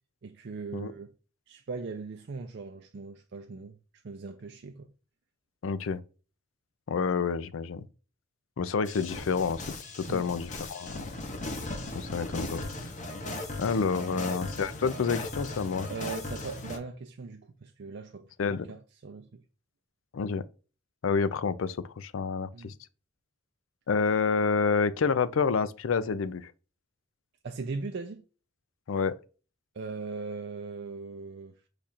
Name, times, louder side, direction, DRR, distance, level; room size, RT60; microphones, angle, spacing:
voice 1, 0.2-1.1 1.5-3.8 4.0-4.9 10.1-10.3 13.9-14.4 15.9-18.2 18.7-19.4 22.5-22.7 27.4-28.2 29.7-31.5, right 4 dB, 60° right, 0.5 m, -39 dB
voice 2, 5.6-6.0 6.9-7.8 8.6-9.6 10.0-11.0 11.9-12.6 13.6-15.9 18.4-18.7 20.1-20.4 21.0-22.7 23.9-26.5 28.9-29.1, left 5 dB, 90° left, 0.4 m, -28 dB
sound 1, 8.9-16.8, left 2 dB, 40° left, 0.9 m, -38 dB
5.0 x 2.4 x 4.2 m
head